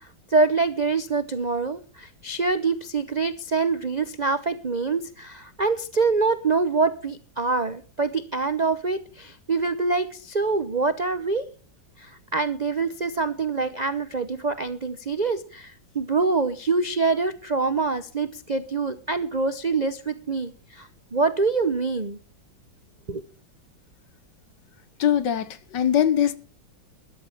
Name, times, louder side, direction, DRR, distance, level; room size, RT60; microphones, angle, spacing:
voice 1, 0.3-11.5 12.0-22.2 23.1-23.2, right 4 dB, 80° right, 0.4 m, -25 dB
voice 2, 25.0-26.4, left 9 dB, 65° left, 1.6 m, -22 dB
13.5 x 11.5 x 6.0 m
omnidirectional pair, 2.1 m